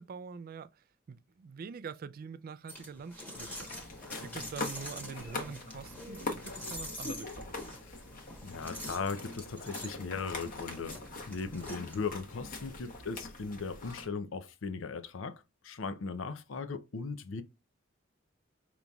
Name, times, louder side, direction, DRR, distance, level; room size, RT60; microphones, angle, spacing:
voice 1, 0.0-3.7 4.2-7.8, right 6 dB, 45° right, 0.3 m, -45 dB
sound 1, 2.7-12.4, left 1 dB, 10° left, 1.1 m, -46 dB
sound 2, 3.3-14.1, left 3 dB, 45° left, 1.0 m, -43 dB
voice 2, 8.4-11.0 11.3-17.4, left 4 dB, 70° left, 0.6 m, -38 dB
5.2 x 3.0 x 2.3 m
head